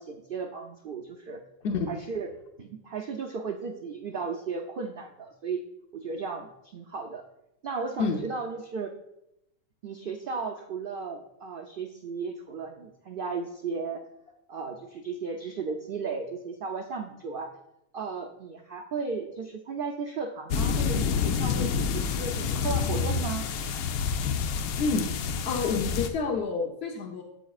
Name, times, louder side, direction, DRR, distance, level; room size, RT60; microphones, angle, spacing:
voice 1, 0.0-1.4 1.9-2.3 2.6-5.6 5.9-7.2 7.6-8.9 9.8-14.0 14.5-17.5 17.9-23.5, right 5 dB, 65° right, 4 dB, 0.5 m, -35 dB
sound 1, 20.5-26.1, left 6 dB, 80° left, 1.1 m, -28 dB
voice 2, 24.8-27.2, left 4 dB, 55° left, 1 dB, 0.8 m, -29 dB
14.0 x 5.0 x 2.4 m, 0.85 s
omnidirectional pair, 1.5 m